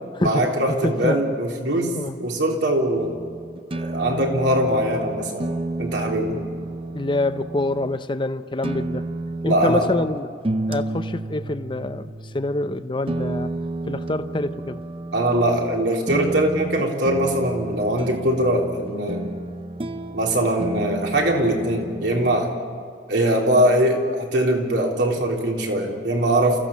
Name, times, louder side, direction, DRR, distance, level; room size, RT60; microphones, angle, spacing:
voice 1, 0.2-3.2 3.7-5.5 5.8-6.4 9.4-9.9 15.1-19.3 20.1-22.5 23.1-26.6, right 1 dB, 75° right, 3.5 m, -21 dB
voice 2, 0.8-1.2 1.9-2.2 6.9-9.1 9.4-10.3 10.7-13.5 13.9-14.8, left 2 dB, 25° left, 0.6 m, -26 dB
sound 1, 2.9-8.0 8.6-22.5, right 2 dB, 30° right, 0.6 m, -31 dB
29.0 x 15.5 x 7.3 m
head